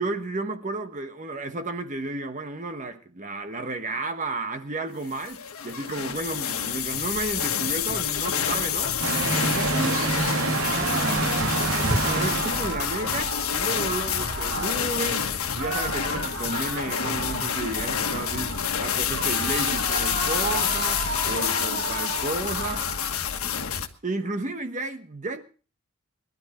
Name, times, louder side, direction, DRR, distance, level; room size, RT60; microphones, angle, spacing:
voice 1, 0.0-9.0 9.4-10.2 10.7-18.5 18.8-23.0 23.4-23.5 24.0-25.4, right 2 dB, 35° right, 1.2 m, -32 dB
sound 1, 5.1-23.9, left 8 dB, 85° left, 1.4 m, -28 dB
sound 2, 9.0-12.7, right 2 dB, 75° right, 2.4 m, -26 dB
sound 3, 10.5-14.8 15.6-18.7 19.1-23.0, right 3 dB, 55° right, 7.5 m, -34 dB
21.0 x 12.0 x 4.3 m
head